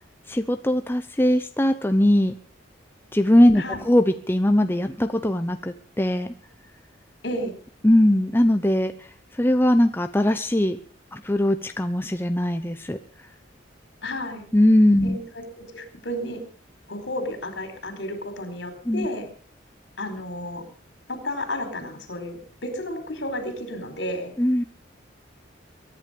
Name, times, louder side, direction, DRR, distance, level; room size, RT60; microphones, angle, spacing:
voice 1, 0.3-2.3 3.1-6.3 7.8-10.8 11.1-13.0 14.5-15.2 18.9-19.1 24.4-24.6, left 1 dB, 10° left, 8 dB, 0.7 m, -20 dB
voice 2, 7.2-7.6 14.0-14.4 15.0-16.4 16.9-19.3 20.0-20.6 21.1-24.3, left 1 dB, 65° left, 7 dB, 4.5 m, -32 dB
23.0 x 10.5 x 5.2 m, 0.43 s
head